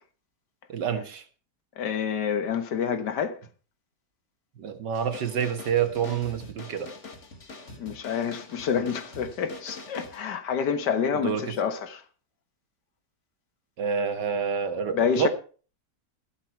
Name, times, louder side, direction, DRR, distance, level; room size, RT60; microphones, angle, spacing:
voice 1, 0.7-1.2 4.6-6.9 11.1-11.4 13.8-15.3, right 7 dB, 80° right, 2.0 m, -28 dB
voice 2, 1.8-3.4 7.8-12.0 14.9-15.3, left 7 dB, 80° left, 1.8 m, -28 dB
sound 1, 4.9-10.2, left 3 dB, 45° left, 2.0 m, -44 dB
13.0 x 12.0 x 4.6 m
omnidirectional pair, 1.8 m